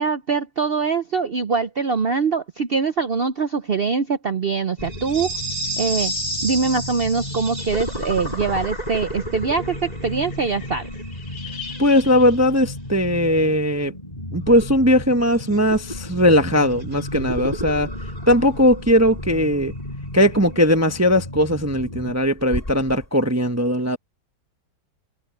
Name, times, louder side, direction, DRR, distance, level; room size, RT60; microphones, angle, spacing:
voice 1, 0.0-5.3 5.8-6.1 6.4-10.9, right 5 dB, 75° right, 0.5 m, -23 dB
sound 1, 4.8-23.1, equal, 20° left, 5.7 m, -31 dB
voice 2, 11.8-13.9 14.3-17.9 18.3-19.7 20.1-24.0, equal, 10° right, 0.8 m, -18 dB
omnidirectional pair, 2.0 m